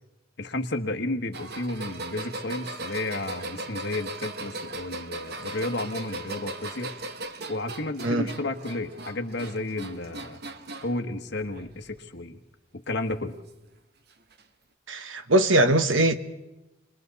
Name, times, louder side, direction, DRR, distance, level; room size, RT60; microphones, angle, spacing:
voice 1, 0.4-6.9 7.5-10.4 10.8-12.4 12.7-13.4, left 2 dB, 60° left, 1.4 m, -32 dB
sound 1, 1.3-11.0 11.4-12.0 13.1-13.2 14.3-14.4, right 2 dB, 55° right, 1.1 m, -38 dB
voice 2, 8.0-8.3 14.9-16.1, right 1 dB, 85° right, 1.1 m, -21 dB
30.0 x 21.5 x 4.1 m
head